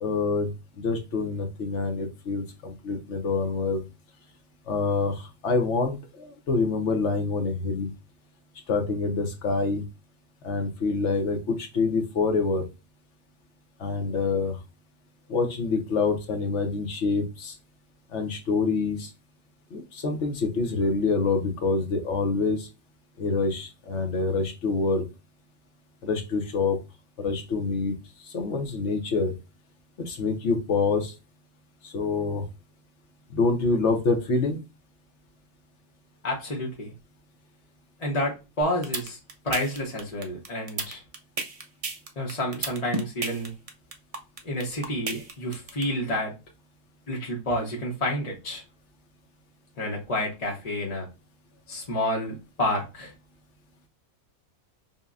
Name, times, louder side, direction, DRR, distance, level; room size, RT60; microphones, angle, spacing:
voice 1, 0.0-0.5 0.8-3.8 4.7-7.9 8.7-9.8 10.4-12.7 13.8-14.6 15.3-17.6 18.1-19.1 19.7-22.7 23.2-25.0 26.0-26.8 27.2-27.9 28.2-29.3 30.0-31.1 31.8-32.4 33.3-34.6, left 4 dB, 60° left, 4 dB, 1.0 m, -26 dB
voice 2, 36.2-36.9 38.0-39.2 39.4-41.0 42.2-43.5 44.4-46.3 47.1-48.6 49.8-51.1 51.7-53.1, left 1 dB, 35° left, -3 dB, 0.8 m, -29 dB
sound 1, 38.6-45.8, right 3 dB, 65° right, 0.3 m, -31 dB
5.4 x 2.2 x 2.4 m, 0.28 s
omnidirectional pair, 1.5 m